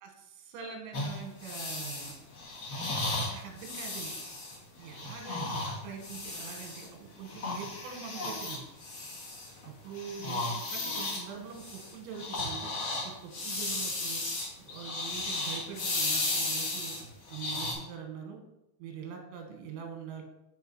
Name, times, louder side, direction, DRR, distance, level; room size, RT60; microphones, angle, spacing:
voice 1, 0.0-2.1 3.3-4.2 4.8-8.6 9.6-12.7 13.0-14.2 14.6-17.0 17.3-18.4 18.8-20.2, right 6 dB, 85° right, 4 dB, 3.5 m, -43 dB
sound 1, 0.9-6.9 7.2-9.7 9.9-17.7, left 2 dB, 60° left, 1.3 m, -35 dB
9.5 x 4.1 x 4.6 m, 0.87 s
omnidirectional pair, 5.2 m